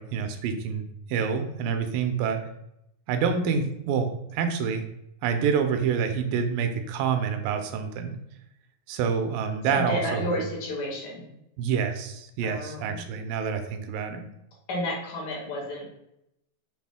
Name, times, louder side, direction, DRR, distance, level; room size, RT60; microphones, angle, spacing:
voice 1, 0.0-2.4 3.1-4.8 5.2-8.2 8.9-10.4 11.6-14.2, right 6 dB, 85° right, 6 dB, 2.3 m, -27 dB
voice 2, 9.7-11.3 12.4-13.1 14.7-15.9, left 1 dB, 75° left, -1 dB, 2.8 m, -31 dB
6.2 x 2.4 x 3.5 m, 0.82 s
omnidirectional pair, 4.0 m